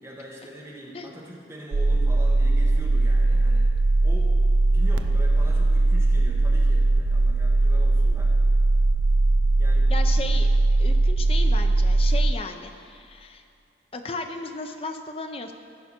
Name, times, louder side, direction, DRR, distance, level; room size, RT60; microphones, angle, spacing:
voice 1, 0.0-3.7 4.0-4.4 4.6-8.3 9.6-10.4, equal, 15° right, -4 dB, 1.5 m, -42 dB
sound 1, 1.7-12.3, right 2 dB, 90° right, 0.4 m, -20 dB
voice 2, 9.9-10.5 10.8-13.4 13.9-15.5, left 3 dB, 30° left, 6 dB, 0.5 m, -35 dB
14.5 x 5.6 x 4.4 m, 2.5 s
head